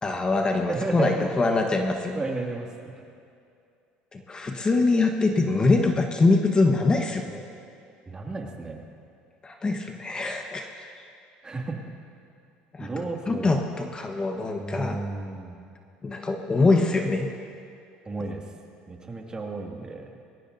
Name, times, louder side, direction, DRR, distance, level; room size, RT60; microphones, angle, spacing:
voice 1, 0.0-2.2 4.1-7.4 9.4-10.9 12.7-12.9 13.3-15.0 16.0-17.3, left 3 dB, 25° left, 3 dB, 1.3 m, -24 dB
voice 2, 0.7-1.3 2.1-3.0 8.1-8.8 11.4-11.8 12.8-13.6 14.5-15.6 18.0-18.4 18.9-20.2, right 3 dB, 25° right, 1 dB, 2.3 m, -32 dB
21.5 x 18.5 x 2.7 m, 2.5 s
supercardioid pair, 90°, 4 cm